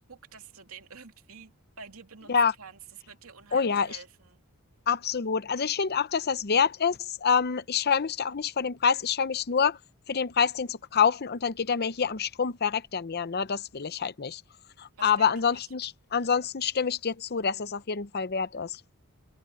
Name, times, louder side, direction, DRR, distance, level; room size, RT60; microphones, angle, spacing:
voice 1, 0.1-2.3 2.6-2.8 3.1-4.4 15.0-15.6, right 5 dB, 85° right, 2.8 m, -48 dB
voice 2, 3.5-4.0 4.9-9.8 10.1-14.4 14.8-18.8, left 6 dB, 50° left, 0.7 m, -27 dB
head